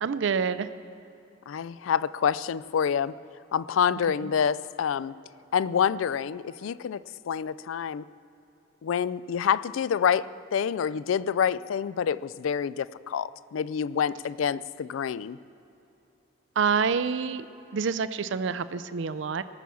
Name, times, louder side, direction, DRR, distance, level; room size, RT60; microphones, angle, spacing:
voice 1, 0.0-0.7 16.6-17.4 17.7-19.4, right 6 dB, 70° right, 14 dB, 0.4 m, -27 dB
voice 2, 1.5-3.1 3.5-5.1 5.5-8.0 8.8-15.4, left 7 dB, 90° left, 18 dB, 0.3 m, -27 dB
18.5 x 6.9 x 6.2 m, 2.9 s
head